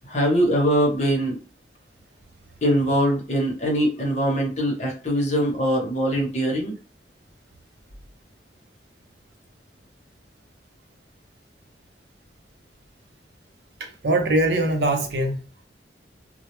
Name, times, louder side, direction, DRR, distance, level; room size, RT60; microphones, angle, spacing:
voice 1, 0.1-1.4 2.6-6.7, equal, 40° left, 0.9 m, -22 dB
voice 2, 13.8-15.7, right 1 dB, 70° right, 0.6 m, -23 dB
2.2 x 2.1 x 3.0 m
head